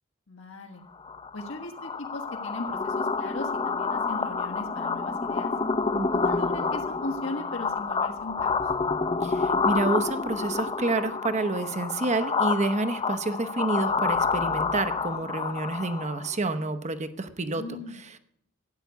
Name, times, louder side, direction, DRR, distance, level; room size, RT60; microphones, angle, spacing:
voice 1, 0.3-0.8 1.3-5.5 6.1-8.6 17.5-18.0, left 2 dB, 75° left, 2 dB, 1.5 m, -38 dB
sound 1, 1.0-16.3, left 4 dB, 25° left, 0.6 m, -28 dB
voice 2, 5.9-6.3 9.2-18.2, right 2 dB, 35° right, 10 dB, 0.9 m, -29 dB
13.0 x 9.3 x 8.2 m, 0.77 s
head